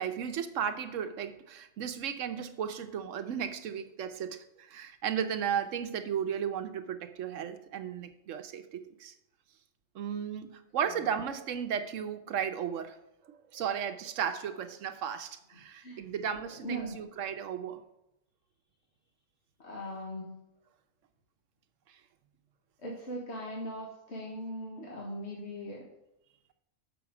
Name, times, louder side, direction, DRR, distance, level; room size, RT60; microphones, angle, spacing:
voice 1, 0.0-9.1 9.9-13.0 13.2-17.8, right 8 dB, 75° right, 9 dB, 1.1 m, -35 dB
voice 2, 16.6-17.0 19.6-20.4 22.8-25.9, equal, 55° left, -2 dB, 1.6 m, -39 dB
7.1 x 5.6 x 6.0 m, 0.89 s
omnidirectional pair, 1.3 m